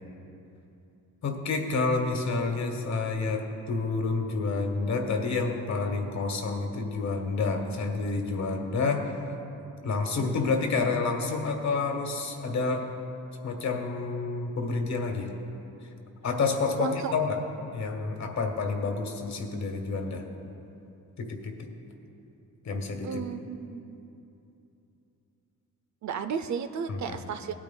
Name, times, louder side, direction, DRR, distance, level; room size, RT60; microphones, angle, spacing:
voice 1, 1.2-9.1 9.8-12.9 13.4-15.3 16.2-17.4 17.7-20.2 21.2-21.5 22.6-23.2 26.9-27.2, left 4 dB, 55° left, 3 dB, 1.3 m, -29 dB
voice 2, 16.7-17.1 23.0-24.1 26.0-27.5, right 6 dB, 55° right, 9 dB, 0.5 m, -34 dB
19.0 x 9.0 x 2.2 m, 2.9 s
cardioid pair, 105°, 34 cm